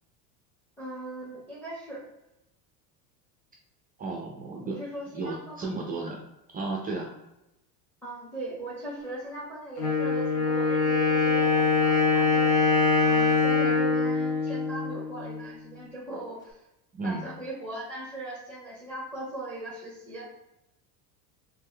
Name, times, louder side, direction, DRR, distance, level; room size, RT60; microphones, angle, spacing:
voice 1, 0.8-2.0 4.6-5.7 8.0-12.5 13.0-16.6 17.0-20.3, right 1 dB, 5° left, -8 dB, 1.0 m, -39 dB
voice 2, 4.0-4.8 5.1-6.2 6.5-7.1 16.9-17.3, right 3 dB, 20° right, -1 dB, 0.4 m, -33 dB
Wind instrument woodwind instrument, 9.8-15.5, left 4 dB, 80° left, 1.2 m, -24 dB
3.4 x 3.2 x 2.2 m, 0.90 s
supercardioid pair, 115°, 49 cm